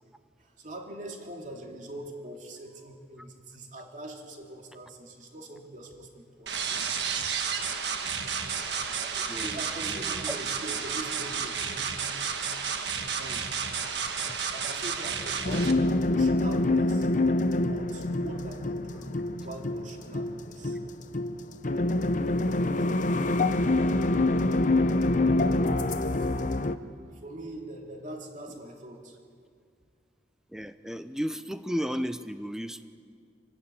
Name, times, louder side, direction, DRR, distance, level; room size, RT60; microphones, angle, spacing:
voice 1, 0.4-7.0 9.0-12.2 13.1-13.5 14.5-17.1 17.5-20.8 21.6-22.0 26.2-26.6 27.1-29.2, right 1 dB, 45° right, 2 dB, 2.6 m, -43 dB
sound 1, 6.5-15.7, right 6 dB, 75° right, 1.5 m, -32 dB
voice 2, 9.3-10.4 16.1-16.2 30.5-32.9, equal, 5° right, 11 dB, 0.6 m, -34 dB
sound 2, 15.4-26.8, left 2 dB, 45° left, 0.7 m, -26 dB
26.5 x 12.5 x 8.6 m, 2.2 s
head